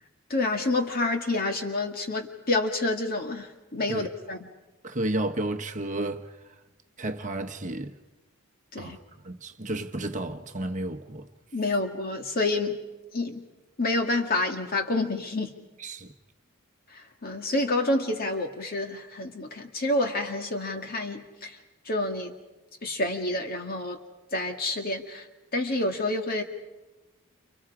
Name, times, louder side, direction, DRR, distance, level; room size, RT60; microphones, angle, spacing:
voice 1, 0.3-4.4 8.7-9.0 11.5-12.8 13.1-13.4 13.8-15.5 17.2-21.5 21.9-22.3 22.8-24.0 24.3-25.2 25.5-26.4, left 2 dB, 40° left, 2.3 m, -28 dB
voice 2, 4.8-6.3 7.0-7.9 8.8-9.0 9.2-11.3 15.8-16.1, right 1 dB, 35° right, 1.1 m, -32 dB
30.0 x 29.5 x 5.0 m
head